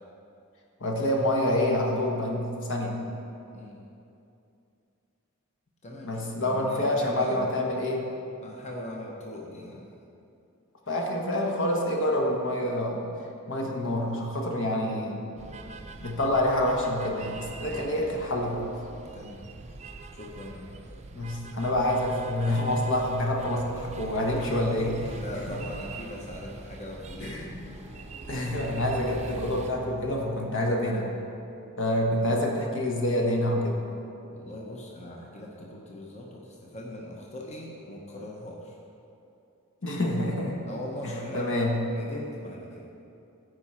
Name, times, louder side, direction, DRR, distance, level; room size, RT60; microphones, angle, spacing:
voice 1, 0.8-3.1 6.0-8.1 10.9-13.1 13.5-15.3 16.0-18.7 21.1-25.2 25.5-25.6 27.2-27.5 28.3-31.2 31.8-33.8 39.8-40.6 41.0-41.8, left 1 dB, 60° left, 0 dB, 1.1 m, -27 dB
voice 2, 3.5-3.9 5.8-7.5 8.4-9.8 19.1-19.4 20.1-20.9 25.1-27.6 32.2-32.5 34.3-38.8 40.7-41.6 41.9-42.9, left 1 dB, 30° left, -2 dB, 0.9 m, -40 dB
sound 1, 15.4-29.7, right 3 dB, 30° right, 0.4 m, -43 dB
sound 2, 26.6-31.3, equal, 5° left, 1.4 m, -46 dB
14.5 x 4.9 x 4.4 m, 2.7 s
head